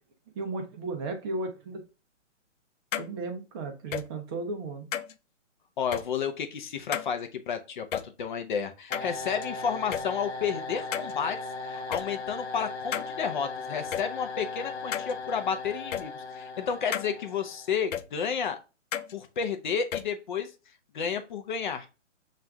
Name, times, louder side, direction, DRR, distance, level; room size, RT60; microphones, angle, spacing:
voice 1, 0.4-1.8 3.0-4.8, right 3 dB, 20° right, 3 dB, 0.6 m, -34 dB
sound 1, 2.9-3.1 3.9-4.0 4.9-5.1 5.9-6.0 6.9-7.1 7.9-8.0 8.9-9.5 9.9-10.0 10.9-11.1 11.9-12.0 12.9-13.1 13.9-14.0 14.9-15.1 15.9-16.0 16.9-17.1 17.9-18.0 18.9-19.1 19.9-20.0, left 9 dB, 80° left, 0.5 m, -32 dB
voice 2, 5.8-11.4 11.6-18.6 19.1-20.5 20.9-21.9, left 7 dB, 40° left, 6 dB, 0.6 m, -31 dB
sound 2, 8.9-17.8, left 3 dB, 60° left, 1.0 m, -38 dB
7.2 x 2.5 x 2.3 m, 0.32 s
hypercardioid pair, 140°, 38 cm